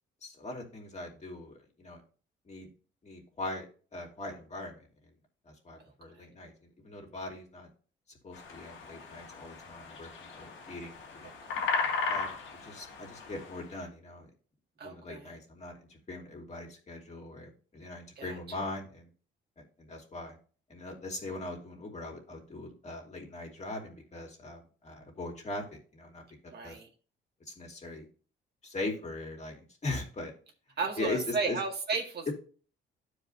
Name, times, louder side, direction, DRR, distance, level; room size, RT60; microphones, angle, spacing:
voice 1, 0.2-2.0 2.5-2.7 3.0-3.7 3.9-4.9 5.5-6.5 6.8-7.7 8.2-11.3 12.1-12.3 12.6-14.3 14.8-19.1 19.6-20.4 20.7-25.6 25.9-26.8 27.5-28.1 28.6-30.3 31.0-31.6, left 2 dB, 35° left, 1 dB, 2.7 m, -40 dB
sound 1, 8.3-13.6, left 5 dB, 75° left, 1.9 m, -36 dB
voice 2, 11.2-11.7 14.8-15.4 18.2-18.6 26.5-26.9 30.8-32.3, right 4 dB, 55° right, 1 dB, 1.9 m, -35 dB
12.5 x 5.0 x 2.6 m, 0.40 s
cardioid pair, 90°, 20 cm